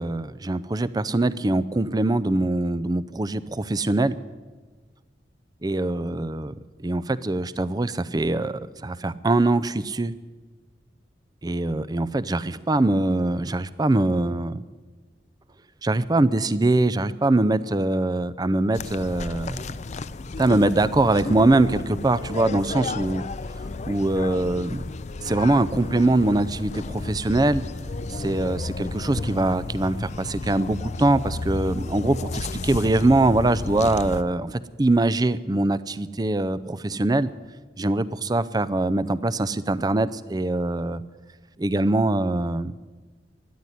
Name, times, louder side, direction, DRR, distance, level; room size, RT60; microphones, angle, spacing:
voice 1, 0.0-4.1 5.6-6.5 6.8-10.1 11.4-14.6 15.8-19.7 20.4-23.2 23.8-24.8 25.2-27.6 28.1-37.3 37.8-41.0 41.6-42.7, right 2 dB, 20° right, 15 dB, 0.5 m, -23 dB
sound 1, 18.7-34.2, left 3 dB, 40° left, 0.5 m, -33 dB
13.5 x 10.0 x 9.8 m, 1.3 s
head